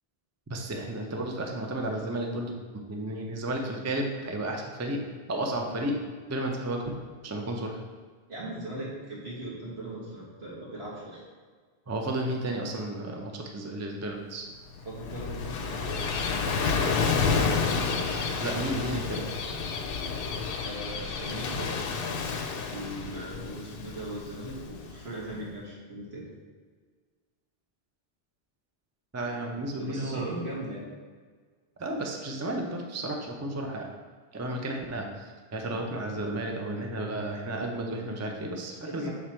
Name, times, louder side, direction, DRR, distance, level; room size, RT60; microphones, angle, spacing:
voice 1, 0.5-2.6 2.9-5.0 5.3-6.0 6.3-6.9 7.2-7.8 11.9-14.4 18.4-19.3 29.1-30.3 31.8-33.9 34.3-39.1, right 1 dB, 20° right, 2 dB, 0.5 m, -32 dB
voice 2, 8.3-11.2 14.9-16.3 16.6-17.6 20.6-21.8 22.7-26.3 29.8-30.9 38.8-39.1, right 1 dB, 75° right, -6 dB, 1.9 m, -39 dB
Gull seagull / Waves surf, 14.7-25.3, left 5 dB, 65° left, 0.7 m, -30 dB
6.6 x 3.6 x 4.4 m, 1.5 s
omnidirectional pair, 1.1 m